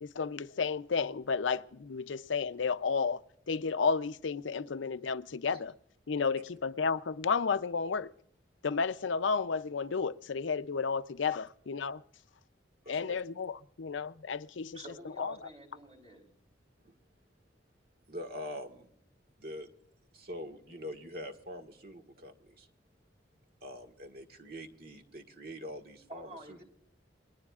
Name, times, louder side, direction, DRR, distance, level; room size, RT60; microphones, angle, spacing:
voice 1, 0.0-5.7 6.1-8.1 8.6-12.0 12.9-14.8 15.2-15.3, left 5 dB, 85° left, 0.6 m, -32 dB
voice 2, 12.9-13.2 16.8-16.9 18.1-18.9 19.4-19.7 20.1-22.7 23.6-26.6, equal, 55° right, 1.7 m, -44 dB
voice 3, 14.7-16.2 26.1-26.6, right 1 dB, 35° right, 3.9 m, -48 dB
28.0 x 20.5 x 2.4 m
head